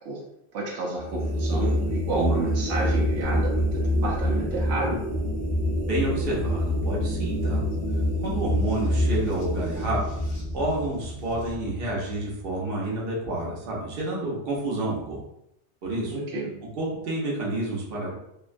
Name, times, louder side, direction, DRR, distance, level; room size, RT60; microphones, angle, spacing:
voice 1, 0.5-5.0 16.1-16.5, right 2 dB, 85° right, -3 dB, 0.9 m, -30 dB
sound 1, 1.0-12.3, equal, 15° right, 0.6 m, -26 dB
sound 2, 2.9-11.5, equal, 40° left, 0.4 m, -40 dB
voice 2, 5.9-7.6 8.2-10.1 10.5-15.2 15.8-16.1 16.8-18.1, right 1 dB, 60° right, -4 dB, 1.0 m, -29 dB
2.6 x 2.1 x 2.5 m, 0.80 s
omnidirectional pair, 1.1 m